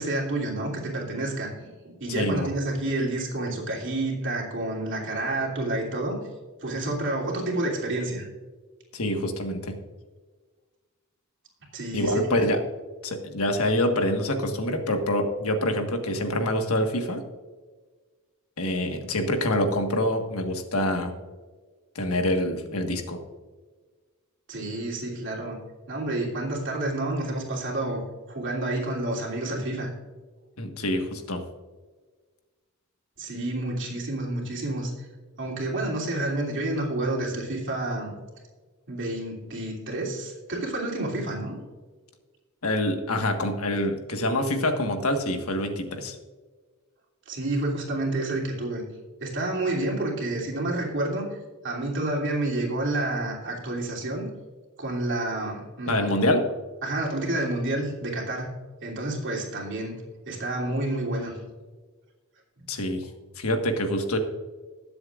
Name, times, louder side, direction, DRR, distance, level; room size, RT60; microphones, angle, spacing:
voice 1, 0.0-6.2 6.6-8.3 11.7-12.4 24.5-25.6 25.9-28.0 28.3-29.9 33.2-34.9 35.4-38.1 38.9-41.5 47.3-48.8 49.2-51.4 51.6-54.3 54.8-56.2 56.8-58.5 58.8-60.0 60.3-61.3 62.9-63.0, right 2 dB, 60° right, -2 dB, 3.0 m, -29 dB
voice 2, 2.1-2.5 8.9-9.8 11.9-12.6 13.0-17.2 18.6-21.1 21.9-23.2 30.6-31.4 42.6-46.2 55.9-56.4 62.7-63.0 63.4-64.2, left 1 dB, 80° left, 5 dB, 1.5 m, -26 dB
20.0 x 7.9 x 2.5 m, 1.4 s
head